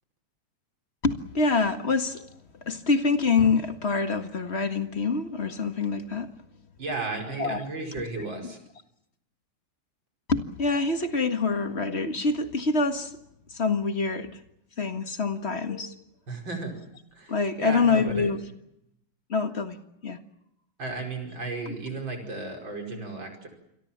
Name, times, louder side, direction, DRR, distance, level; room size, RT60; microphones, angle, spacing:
voice 1, 1.0-2.3 2.7-6.3 7.3-7.6 7.9-8.5 10.3-13.1 13.5-14.4 14.8-16.0 17.3-18.4 19.3-19.8 20.0-20.2 21.7-21.8, left 4 dB, 30° left, 7 dB, 1.8 m, -26 dB
voice 2, 6.8-8.6 16.3-16.8 17.1-18.3 20.8-23.5, right 3 dB, 60° right, 3 dB, 5.9 m, -34 dB
28.5 x 22.5 x 7.4 m, 0.80 s
omnidirectional pair, 2.3 m